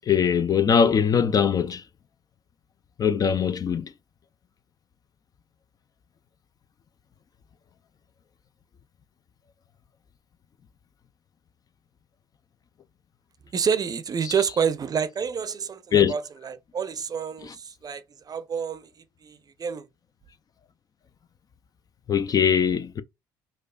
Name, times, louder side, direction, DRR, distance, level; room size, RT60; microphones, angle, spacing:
voice 1, 0.1-1.8 3.0-3.9 14.2-14.3 15.9-16.1 17.4-17.5 22.1-23.0, left 7 dB, 35° left, 0.4 m, -21 dB
voice 2, 13.5-18.9 19.2-19.9, right 6 dB, 35° right, 0.6 m, -28 dB
4.6 x 2.4 x 2.3 m
hypercardioid pair, 60°, 11 cm